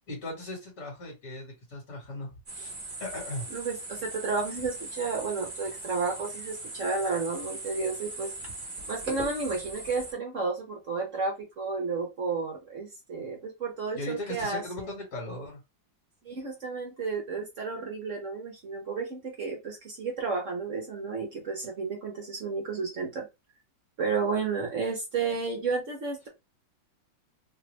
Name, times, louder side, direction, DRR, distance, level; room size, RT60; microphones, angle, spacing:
voice 1, 0.1-2.7 3.0-3.5 13.9-15.6, left 1 dB, 50° left, -3 dB, 1.9 m, -38 dB
sound 1, 2.5-10.1, right 2 dB, 25° right, 1.1 m, -40 dB
voice 2, 3.5-8.3 8.9-14.9 16.2-23.3 24.0-26.3, right 4 dB, 50° right, 1 dB, 1.1 m, -32 dB
3.4 x 2.4 x 3.0 m, 0.23 s
omnidirectional pair, 2.0 m